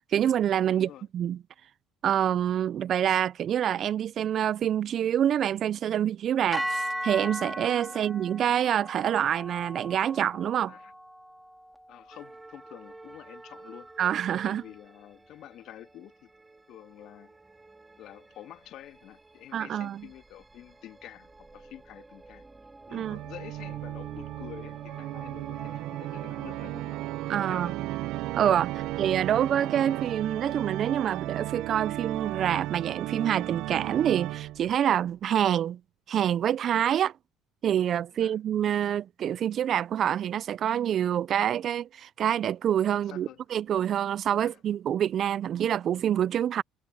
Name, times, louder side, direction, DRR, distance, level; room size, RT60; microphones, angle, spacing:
voice 1, 0.0-1.4 2.0-10.7 14.0-14.6 19.5-20.0 22.9-23.2 27.3-27.7 28.3-35.8 36.1-37.1 37.6-46.6, right 10 dB, 55° right, 0.4 m, -26 dB
voice 2, 0.7-1.1 7.9-8.1 10.7-10.9 11.9-13.9 14.4-16.3 16.7-17.4 18.0-22.5 22.9-27.0 27.4-27.8 28.7-28.9 38.1-38.4 42.9-43.4 44.4-44.6, left 13 dB, 65° left, 1.9 m, -48 dB
sound 1, 6.5-14.8, equal, ahead, 3.3 m, -39 dB
sound 2, 12.1-31.1, right 3 dB, 20° right, 2.2 m, -52 dB
Organ, 22.9-34.8, right 16 dB, 70° right, 1.0 m, -35 dB
hypercardioid pair, 70°, 0 cm